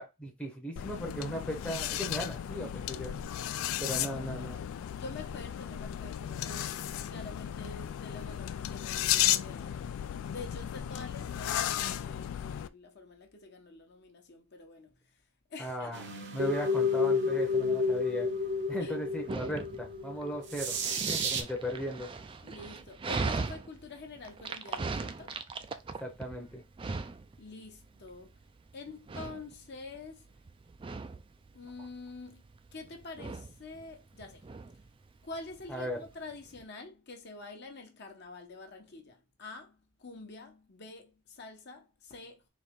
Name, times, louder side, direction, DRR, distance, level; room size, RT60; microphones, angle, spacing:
voice 1, 0.0-3.1 3.8-4.6 15.6-16.0 16.3-18.3 18.7-20.8 21.1-22.1 26.0-26.6 35.7-36.0, equal, 5° left, 0.7 m, -37 dB
sound 1, 0.8-12.7, left 11 dB, 75° left, 0.3 m, -34 dB
voice 2, 3.9-4.7 5.0-9.9 10.2-14.9 15.5-15.9 18.8-19.0 22.4-25.3 27.4-28.3 28.7-30.3 31.5-32.4 32.7-34.5 35.2-42.5, left 3 dB, 50° left, 0.9 m, -47 dB
sound 2, 15.9-21.4, left 3 dB, 55° right, 0.8 m, -31 dB
Dog, 17.5-36.7, right 4 dB, 25° right, 0.3 m, -40 dB
4.2 x 2.9 x 3.5 m
head